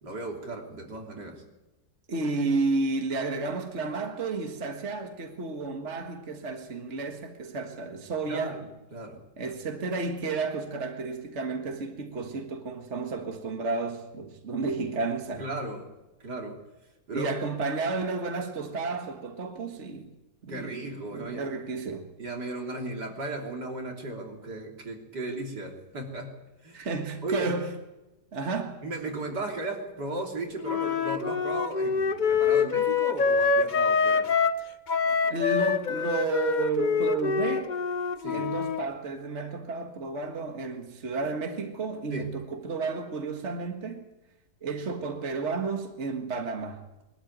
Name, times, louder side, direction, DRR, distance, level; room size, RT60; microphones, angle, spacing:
voice 1, 0.0-1.4 8.2-8.6 8.9-9.5 15.4-15.9 16.2-16.6 17.1-17.3 20.5-21.7 22.2-26.4 26.6-26.9 27.2-27.5 28.8-34.3 38.2-38.5 42.1-42.3, right 2 dB, 80° right, 3.8 m, -36 dB
voice 2, 2.1-8.6 9.4-15.5 17.1-20.1 20.4-22.1 26.7-27.7 28.3-28.8 35.1-37.8 38.3-44.1 44.6-46.8, right 4 dB, 45° right, 1.9 m, -32 dB
Wind instrument woodwind instrument, 30.6-34.6 34.9-38.8, left 5 dB, 45° left, 0.6 m, -25 dB
22.0 x 13.0 x 9.4 m
omnidirectional pair, 1.8 m